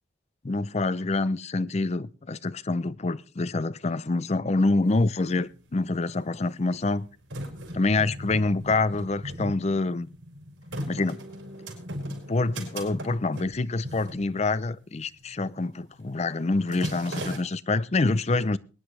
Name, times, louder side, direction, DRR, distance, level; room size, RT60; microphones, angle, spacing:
voice 1, 0.4-7.1 7.7-10.1 10.9-11.2 12.1-18.6, left 3 dB, 35° left, 0.5 m, -26 dB
sound 1, 4.9-5.0 5.2-6.0 6.6-14.9 15.2-15.5 15.8-16.1 16.4-17.4, equal, 85° right, 4.7 m, -38 dB
22.0 x 10.0 x 3.2 m
head